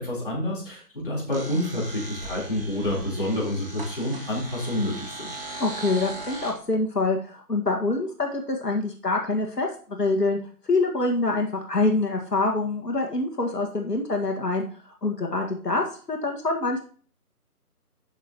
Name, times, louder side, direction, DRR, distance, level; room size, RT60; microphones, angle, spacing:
voice 1, 0.0-5.3, left 1 dB, 35° left, -4 dB, 3.8 m, -28 dB
sound 1, 1.3-6.5, right 2 dB, 35° right, 2.5 m, -39 dB
voice 2, 5.6-10.4 10.6-14.6 15.0-16.8, left 3 dB, 80° left, 2 dB, 1.9 m, -25 dB
11.5 x 6.5 x 2.9 m, 0.42 s
figure-of-eight pair, 170°, 47 cm